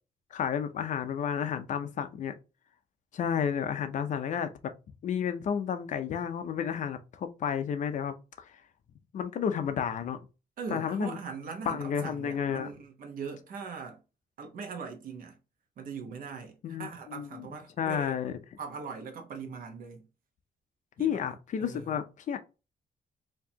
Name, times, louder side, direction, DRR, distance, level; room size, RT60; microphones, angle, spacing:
voice 1, 0.3-2.3 3.1-4.5 5.0-8.5 9.1-10.2 10.7-11.2 11.7-12.7 16.6-17.5 17.8-18.4 21.0-22.4, left 8 dB, 50° left, 0.5 m, -31 dB
voice 2, 10.6-14.0 14.4-15.4 15.8-18.2 18.6-20.1 21.0-21.2 21.6-21.9, right 5 dB, 60° right, 1.0 m, -41 dB
4.4 x 2.8 x 2.8 m
cardioid pair, 180°, 17 cm